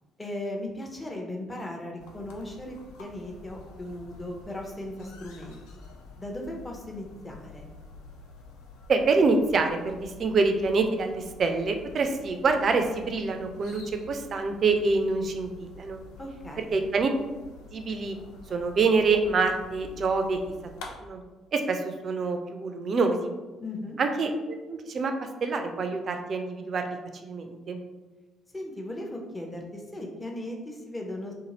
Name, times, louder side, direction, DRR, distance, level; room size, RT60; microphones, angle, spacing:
voice 1, 0.2-5.8 6.2-7.7 16.2-16.7 23.6-24.0 28.5-31.3, left 1 dB, 20° left, 1 dB, 0.6 m, -37 dB
sound 1, 2.0-20.9, left 3 dB, 70° left, 0.4 m, -48 dB
voice 2, 8.9-16.0 16.6-17.1 17.7-18.2 18.5-20.5 20.8-21.2 21.5-23.3 24.0-27.0 27.2-27.8, right 4 dB, 45° right, 6 dB, 0.3 m, -26 dB
2.7 x 2.5 x 2.8 m, 1.2 s
figure-of-eight pair, 45°, 0 cm